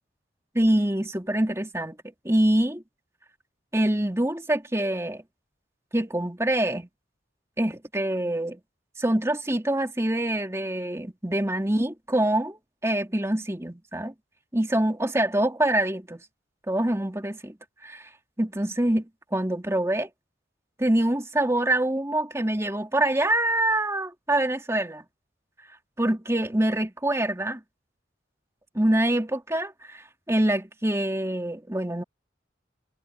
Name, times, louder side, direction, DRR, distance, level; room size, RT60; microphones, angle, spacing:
voice 1, 0.5-2.0 2.2-2.8 3.7-5.2 5.9-6.9 7.6-8.6 9.0-14.1 14.5-16.2 16.7-17.6 17.8-18.1 18.4-20.1 20.8-25.0 26.0-27.6 28.7-32.0, right 1 dB, 15° right, 2.7 m, -25 dB
head